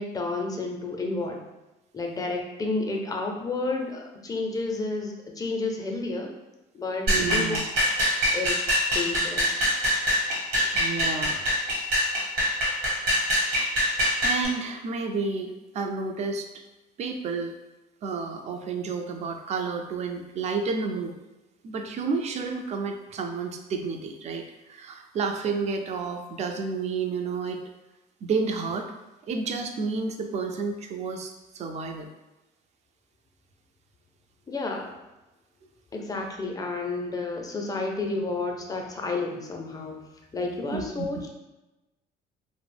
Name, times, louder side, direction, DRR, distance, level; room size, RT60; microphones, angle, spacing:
voice 1, 0.0-1.4 1.9-6.3 6.7-7.6 8.3-8.7 8.9-9.7 34.5-34.9 35.9-40.0 40.3-41.3, left 3 dB, 20° left, 1 dB, 0.4 m, -31 dB
voice 2, 7.1-7.6 10.7-11.4 13.4-13.8 14.2-16.5 17.0-17.6 18.0-21.2 21.6-27.6 28.2-28.9 29.3-32.1 40.7-41.1, right 4 dB, 40° right, 4 dB, 0.4 m, -30 dB
sound 1, 7.1-14.5, equal, 70° right, 1.1 m, -24 dB
2.3 x 2.0 x 3.2 m, 1.0 s
cardioid pair, 110°, 17 cm